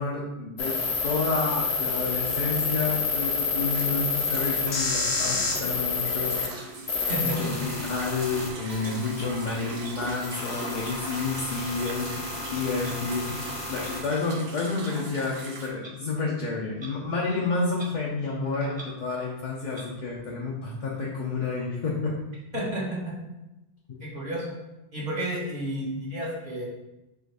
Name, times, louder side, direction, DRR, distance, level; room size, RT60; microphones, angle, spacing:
voice 1, 0.0-6.8 7.2-22.1 22.5-22.6 23.9-24.0, left 4 dB, 50° left, -3 dB, 0.7 m, -30 dB
sound 1, 0.6-6.5 6.9-14.0, left 4 dB, 85° left, 1.1 m, -29 dB
sound 2, 3.5-15.7, right 3 dB, 75° right, 0.9 m, -41 dB
voice 2, 7.1-7.7 22.5-23.1 24.0-24.5 24.9-26.6, equal, 55° right, -5 dB, 1.4 m, -31 dB
Clock, 8.8-8.9 9.8-10.0 10.8-10.9 11.8-12.0 12.8-12.9 13.8-13.9 14.8-15.0 15.8-16.0 16.7-16.9 17.2-17.3 17.7-17.9 18.4-19.3 19.7-19.9, right 2 dB, 30° right, 0.7 m, -45 dB
4.7 x 2.5 x 4.6 m, 0.97 s
omnidirectional pair, 1.0 m